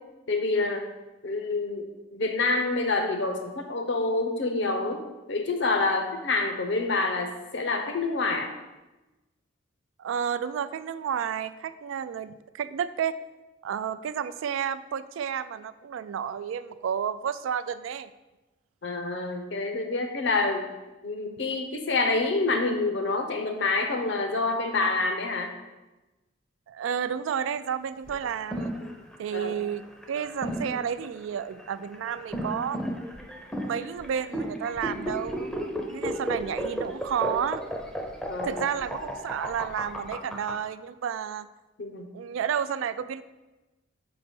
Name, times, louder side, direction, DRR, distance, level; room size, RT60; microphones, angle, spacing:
voice 1, 0.3-0.8 1.2-5.0 5.3-8.5 18.8-20.7 21.0-25.5 29.3-29.6 38.3-38.7 41.8-42.1, left 3 dB, 65° left, 4 dB, 0.8 m, -27 dB
voice 2, 10.0-13.2 13.6-18.1 26.7-28.7 29.2-29.8 30.1-32.8 33.6-35.5 35.9-37.6 38.4-41.5 42.1-43.2, right 8 dB, 85° right, 13 dB, 0.3 m, -31 dB
sound 1, 28.1-40.5, equal, 5° left, 0.5 m, -33 dB
5.2 x 3.9 x 5.4 m, 1.1 s
head